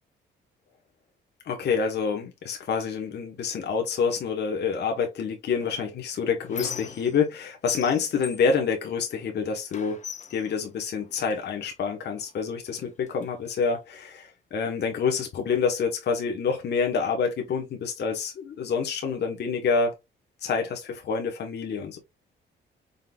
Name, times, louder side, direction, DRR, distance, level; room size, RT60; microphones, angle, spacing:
voice 1, 1.4-10.0 10.3-19.9 20.4-22.0, left 5 dB, 60° left, 1.1 m, -27 dB
Squeak, 5.6-7.4 7.7-9.3 9.7-11.4 12.2-12.3 12.7-13.7, left 6 dB, 35° left, 0.9 m, -41 dB
5.2 x 3.8 x 2.3 m
cardioid pair, 90°, 20 cm